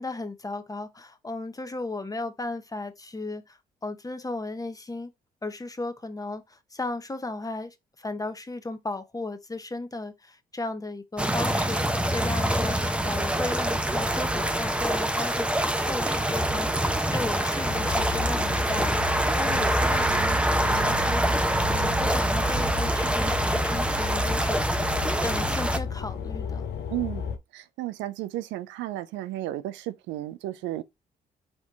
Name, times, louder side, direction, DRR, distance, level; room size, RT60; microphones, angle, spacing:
voice 1, 0.0-5.1 5.4-16.7 17.1-24.7 25.2-26.7, left 2 dB, 20° left, 0.9 m, -35 dB
sound 1, 11.2-25.8, right 1 dB, 5° right, 0.7 m, -25 dB
sound 2, 17.6-27.4, left 6 dB, 65° left, 0.7 m, -33 dB
voice 2, 26.9-27.2 27.5-30.8, right 15 dB, 75° right, 0.4 m, -33 dB
4.3 x 2.8 x 3.3 m
hypercardioid pair, 50°, 19 cm